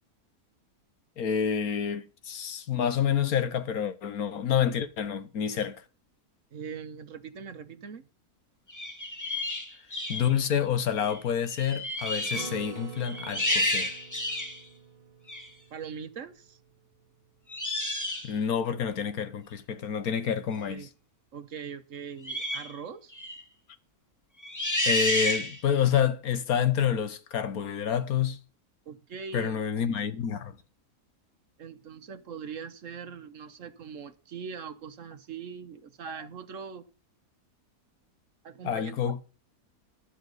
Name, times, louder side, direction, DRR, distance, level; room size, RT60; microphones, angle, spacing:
voice 1, 1.2-5.8 10.1-13.9 18.2-20.9 24.9-28.4 29.3-30.5 38.6-39.2, left 8 dB, 70° left, 1.5 m, -28 dB
voice 2, 6.5-8.1 15.7-16.6 20.7-20.9 21.3-23.1 28.9-29.6 31.6-36.9 38.4-38.9, right 6 dB, 60° right, 1.3 m, -41 dB
sound 1, 8.7-10.3 11.0-11.2 11.5-12.5 13.0-14.6 15.3-15.5 17.5-18.3 22.2-22.7 23.1-23.4 24.4-25.7, left 1 dB, 10° left, 1.4 m, -30 dB
Acoustic guitar, 12.3-17.0, right 4 dB, 40° right, 0.6 m, -46 dB
13.0 x 11.5 x 4.0 m
omnidirectional pair, 1.6 m